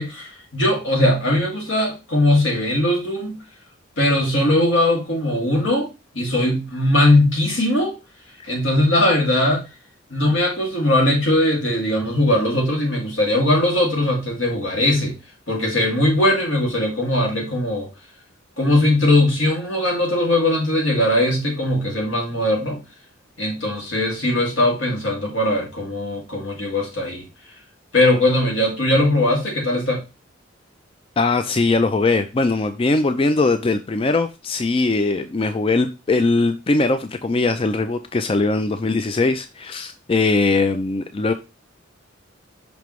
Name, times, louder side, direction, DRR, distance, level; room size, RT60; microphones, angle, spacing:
voice 1, 0.0-3.4 4.0-5.9 6.1-8.0 8.4-9.6 10.1-15.2 15.5-17.9 18.6-22.8 23.4-27.2 27.9-30.0, left 1 dB, 80° left, 2.4 m, -20 dB
voice 2, 31.2-41.3, left 3 dB, 30° left, 0.4 m, -20 dB
5.9 x 5.2 x 3.1 m
head